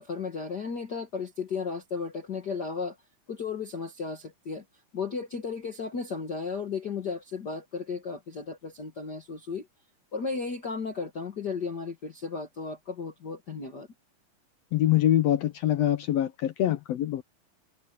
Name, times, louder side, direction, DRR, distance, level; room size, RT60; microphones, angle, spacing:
voice 1, 0.0-3.0 3.3-4.6 4.9-9.7 10.1-13.9, left 5 dB, 40° left, 1.6 m, -34 dB
voice 2, 14.7-17.2, left 12 dB, 75° left, 1.5 m, -24 dB
omnidirectional pair, 3.9 m